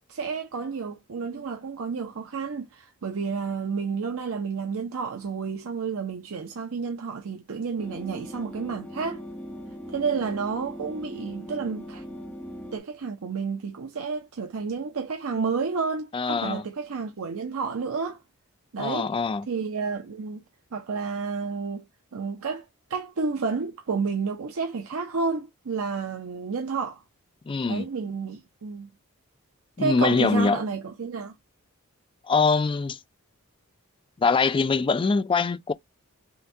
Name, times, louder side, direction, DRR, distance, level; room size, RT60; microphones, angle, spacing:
voice 1, 0.1-9.2 9.9-12.0 12.7-18.2 18.7-19.2 19.5-20.4 20.7-21.9 22.1-27.0 27.7-28.9 29.8-31.3, right 5 dB, 65° right, 0.6 m, -30 dB
sound 1, 7.8-12.8, equal, 5° left, 0.8 m, -40 dB
voice 2, 16.1-16.7 18.8-19.5 27.5-27.9 29.8-30.6 32.3-33.0 34.2-35.7, left 4 dB, 25° left, 0.3 m, -23 dB
5.7 x 2.2 x 2.6 m
head